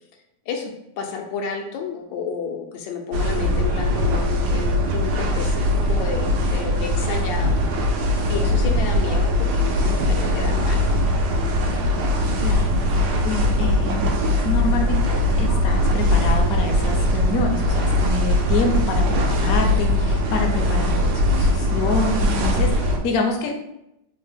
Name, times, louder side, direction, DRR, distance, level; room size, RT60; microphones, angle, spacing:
voice 1, 0.5-7.9 8.3-11.0, left 6 dB, 90° left, 2 dB, 1.3 m, -31 dB
sound 1, 3.1-23.0, left 1 dB, 75° right, 1.2 m, -20 dB
voice 2, 12.4-14.1 14.4-23.6, left 2 dB, 70° left, 3 dB, 0.9 m, -27 dB
3.5 x 2.1 x 3.3 m, 0.82 s
omnidirectional pair, 2.0 m